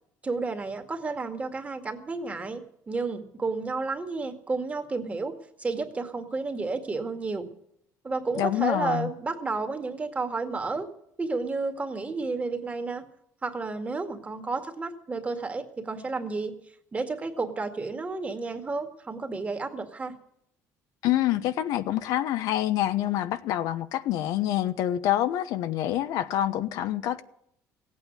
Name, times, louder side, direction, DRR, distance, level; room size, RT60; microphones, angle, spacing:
voice 1, 0.2-5.3 5.6-7.5 8.0-10.9 11.2-13.0 13.4-16.5 16.9-20.1, right 3 dB, 20° right, 2.0 m, -31 dB
voice 2, 8.4-9.1 21.0-27.2, left 12 dB, 75° left, 1.0 m, -26 dB
16.0 x 8.7 x 9.2 m
cardioid pair, 120°, 6 cm